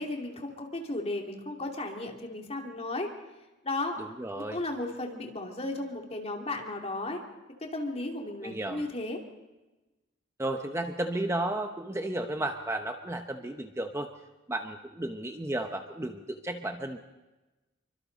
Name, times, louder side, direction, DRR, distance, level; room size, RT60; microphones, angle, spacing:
voice 1, 0.0-3.1 3.6-4.0 4.4-7.2 7.7-9.2, left 2 dB, 30° left, 1 dB, 2.7 m, -34 dB
voice 2, 4.0-4.6 8.4-8.8 10.4-14.1 14.5-17.0, right 1 dB, 15° right, 5 dB, 0.9 m, -33 dB
27.0 x 24.0 x 4.0 m, 1.1 s
head